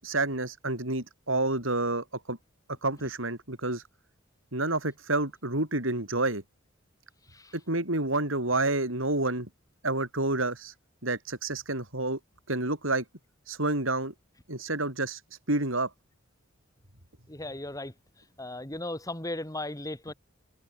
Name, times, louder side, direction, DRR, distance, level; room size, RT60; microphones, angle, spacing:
voice 1, 0.0-2.4 2.8-3.8 4.5-6.4 7.7-9.5 9.8-10.7 11.0-12.2 12.5-13.0 13.5-14.1 14.5-15.2 15.5-15.9, right 2 dB, 75° right, 7.5 m, -29 dB
voice 2, 17.3-17.9 18.4-20.1, left 1 dB, 15° left, 4.2 m, -36 dB
head